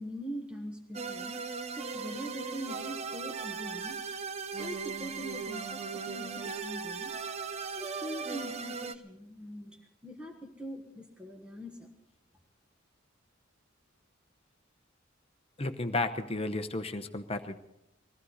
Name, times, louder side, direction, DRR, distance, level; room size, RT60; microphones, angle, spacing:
voice 1, 0.0-1.4 1.8-4.0 4.6-7.1 7.7-11.9, equal, 5° right, 1 dB, 1.4 m, -43 dB
sound 1, 0.9-9.0, right 5 dB, 35° right, 0.6 m, -38 dB
voice 2, 15.6-17.6, left 2 dB, 30° left, 8 dB, 0.9 m, -33 dB
21.0 x 15.5 x 4.1 m, 0.84 s
head